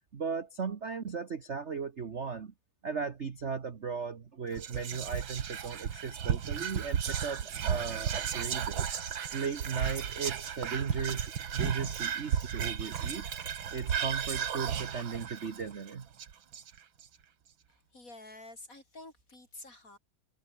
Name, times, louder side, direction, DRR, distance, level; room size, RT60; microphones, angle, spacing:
voice 1, 0.1-2.5 2.8-8.9 9.1-13.3 13.7-16.1, right 5 dB, 40° right, 1.3 m, -37 dB
Whispering, 4.5-17.0, right 8 dB, 65° right, 2.4 m, -34 dB
voice 2, 17.7-20.0, left 2 dB, 35° left, 6.2 m, -50 dB
omnidirectional pair, 2.4 m